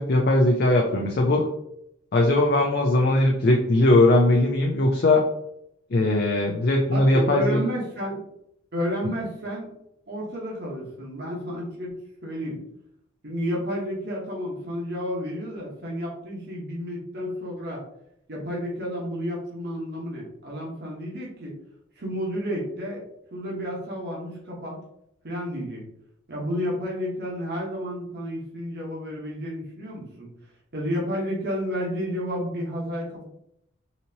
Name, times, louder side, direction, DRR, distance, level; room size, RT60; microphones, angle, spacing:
voice 1, 0.0-1.4 2.1-5.2 5.9-7.6, left 2 dB, 50° left, 1 dB, 0.4 m, -20 dB
voice 2, 6.9-8.2 8.7-9.7 10.1-12.6 13.2-17.8 18.3-21.6 22.0-23.0 23.3-24.8 25.2-25.8 26.3-30.3 30.7-33.3, equal, 50° right, -3 dB, 1.0 m, -31 dB
4.0 x 2.9 x 2.7 m, 0.75 s
head